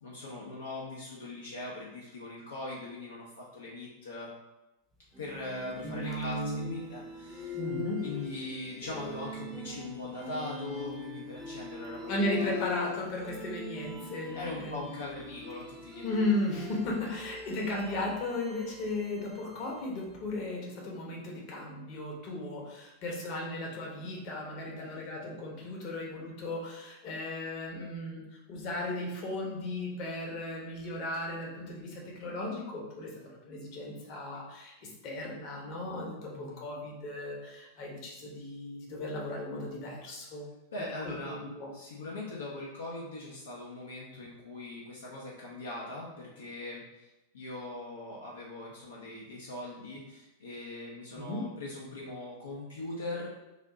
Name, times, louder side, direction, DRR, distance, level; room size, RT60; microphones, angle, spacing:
voice 1, 0.0-4.3 5.2-7.6 8.0-12.1 12.4-12.5 14.3-16.0 24.7-24.9 36.3-36.6 40.7-41.4 41.7-47.1 47.3-53.3, left 2 dB, 65° left, -4 dB, 0.6 m, -41 dB
sound 1, 5.1-20.2, left 3 dB, ahead, 0.7 m, -42 dB
voice 2, 5.8-6.7 7.5-8.0 12.1-14.8 16.0-33.1 33.5-40.5 40.8-41.7 51.1-51.4, left 1 dB, 40° left, -1 dB, 1.0 m, -36 dB
3.5 x 2.6 x 3.6 m, 0.99 s
figure-of-eight pair, 90°, 0 cm